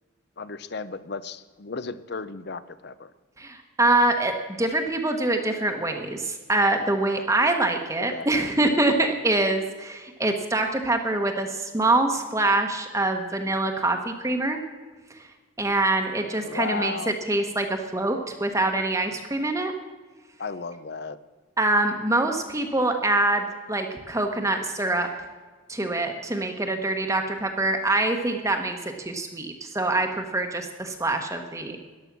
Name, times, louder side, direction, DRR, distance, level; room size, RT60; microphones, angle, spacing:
voice 1, 0.4-3.1 8.1-8.3 16.3-17.1 20.4-21.2, left 4 dB, 50° left, 15 dB, 0.6 m, -34 dB
voice 2, 3.4-4.3 4.6-14.6 15.6-19.7 21.6-25.1 25.7-31.8, right 2 dB, 15° right, 4 dB, 1.0 m, -25 dB
14.0 x 11.0 x 6.0 m, 1.4 s
head